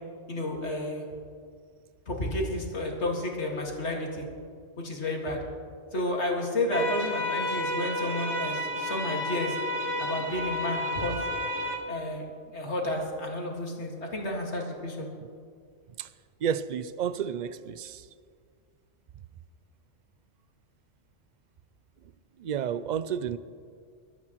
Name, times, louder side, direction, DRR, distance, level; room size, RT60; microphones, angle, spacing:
voice 1, 0.3-1.0 2.1-4.3 4.8-5.4 5.9-9.6 10.0-11.1 11.9-12.2 12.5-15.1, left 1 dB, 70° left, 2.3 m, -31 dB
sound 1, 6.7-11.7, left 1 dB, 85° right, 2.0 m, -31 dB
voice 2, 16.4-18.1 22.4-23.4, right 8 dB, 55° right, 0.5 m, -31 dB
22.0 x 12.5 x 3.0 m
omnidirectional pair, 1.2 m